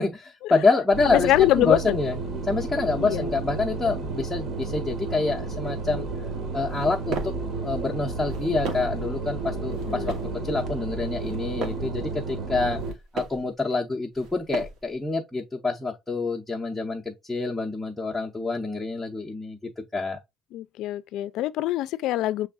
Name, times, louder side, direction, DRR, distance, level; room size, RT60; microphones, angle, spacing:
voice 1, 0.0-2.1 2.4-6.1 6.5-7.3 7.6-10.1 10.4-12.8 13.1-19.6 19.9-20.2, left 3 dB, 5° left, 0.6 m, -26 dB
sound 1, 0.9-12.9, right 3 dB, 45° right, 1.2 m, -32 dB
voice 2, 1.1-2.0 3.0-3.3 9.9-10.2 20.5-22.5, left 14 dB, 60° left, 0.4 m, -24 dB
sound 2, 6.7-7.5 8.2-9.1 9.7-10.4 11.1-12.0 12.7-13.5 14.1-14.9, right 4 dB, 65° right, 1.2 m, -36 dB
6.3 x 3.3 x 2.3 m
cardioid pair, 155°, 0 cm